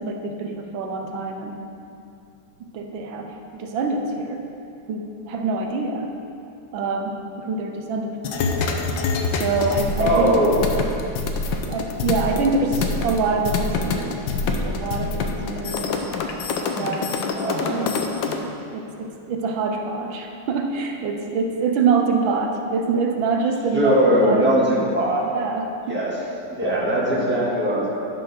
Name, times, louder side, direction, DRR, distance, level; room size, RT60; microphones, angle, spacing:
voice 1, 0.0-1.6 2.6-4.4 4.9-6.1 6.7-8.6 9.3-10.3 11.7-14.2 14.5-15.9 16.7-17.9 18.3-24.5 25.3-26.0, right 4 dB, 80° right, 3 dB, 1.5 m, -25 dB
sound 1, 8.2-18.4, left 4 dB, 80° left, 1.5 m, -25 dB
voice 2, 10.0-10.6 12.4-12.5 17.3-17.9 23.7-25.2 25.9-26.2 26.5-27.9, equal, 5° right, -6 dB, 1.5 m, -20 dB
10.5 x 5.4 x 6.0 m, 2.6 s
omnidirectional pair, 2.1 m